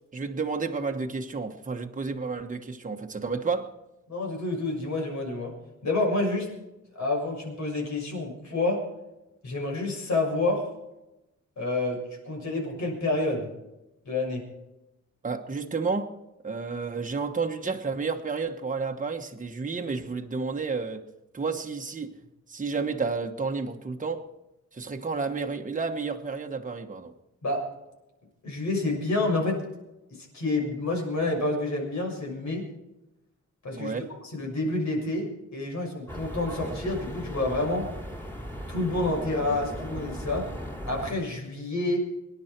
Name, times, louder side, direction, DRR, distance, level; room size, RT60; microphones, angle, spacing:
voice 1, 0.1-3.7 15.2-16.1 16.4-21.0 21.3-22.1 22.5-24.2 24.7-27.1 33.7-34.0, right 4 dB, 25° right, 1.2 m, -31 dB
voice 2, 4.1-5.5 5.8-6.5 6.9-8.8 9.4-10.7 11.6-13.5 14.0-14.5 27.4-27.7 28.4-29.6 30.2-32.6 33.6-33.9 34.3-37.9 38.7-40.4 40.9-42.0, left 2 dB, 70° left, 6.6 m, -28 dB
sound 1, 36.1-41.1, equal, 5° left, 2.8 m, -37 dB
25.0 x 11.5 x 4.5 m
wide cardioid pair, 160°, 30 cm